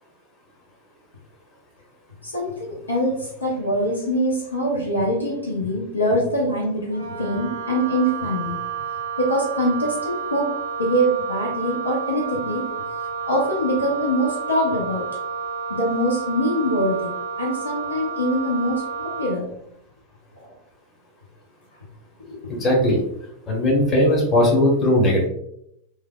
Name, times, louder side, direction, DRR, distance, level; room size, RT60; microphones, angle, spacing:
voice 1, 2.2-8.6 9.2-12.7 13.3-15.1 15.7-19.5 20.4-20.5 22.2-22.4, equal, 80° left, -3 dB, 0.6 m, -24 dB
Wind instrument woodwind instrument, 6.9-19.4, right 6 dB, 80° right, 0.7 m, -30 dB
voice 2, 22.5-23.0 23.5-25.3, left 1 dB, 25° left, -2 dB, 1.0 m, -18 dB
3.1 x 2.2 x 2.2 m, 0.74 s
figure-of-eight pair, 90°, 0 cm